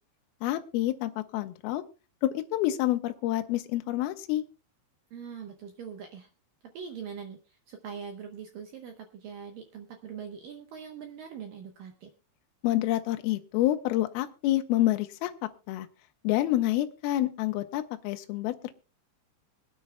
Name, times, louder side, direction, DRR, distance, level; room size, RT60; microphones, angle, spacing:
voice 1, 0.4-1.8 2.2-4.4 12.6-15.3 15.7-15.9 16.2-18.5, left 14 dB, 85° left, 8 dB, 2.2 m, -28 dB
voice 2, 5.1-6.3 6.7-12.1, right 7 dB, 75° right, 4 dB, 2.1 m, -42 dB
25.5 x 9.3 x 2.2 m, 0.31 s
omnidirectional pair, 5.3 m